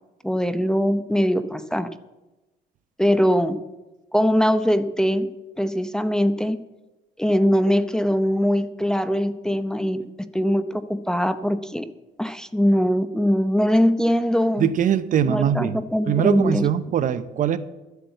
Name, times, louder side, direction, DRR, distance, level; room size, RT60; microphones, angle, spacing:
voice 1, 0.2-1.9 3.0-3.6 4.1-5.3 5.6-6.6 7.2-10.0 10.3-11.9 12.2-14.7 15.3-16.7, equal, 5° left, 0.7 m, -21 dB
voice 2, 14.6-15.8 16.1-17.6, right 9 dB, 50° right, 0.8 m, -21 dB
12.0 x 8.1 x 7.9 m
cardioid pair, 110°, 17 cm